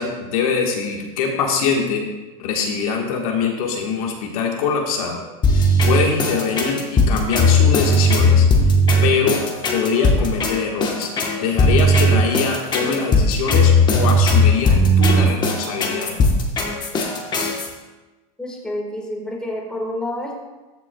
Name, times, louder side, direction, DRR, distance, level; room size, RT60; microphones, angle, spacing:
voice 1, 0.0-2.0 2.4-5.2 5.5-8.5 9.0-9.4 9.7-11.1 11.4-16.1, left 5 dB, 75° left, 1 dB, 1.4 m, -23 dB
sound 1, 5.4-17.7, left 1 dB, 25° left, 1.1 m, -17 dB
voice 2, 18.4-20.4, left 1 dB, 5° left, -2 dB, 1.5 m, -28 dB
13.5 x 6.0 x 2.3 m, 1.2 s
supercardioid pair, 135°, 19 cm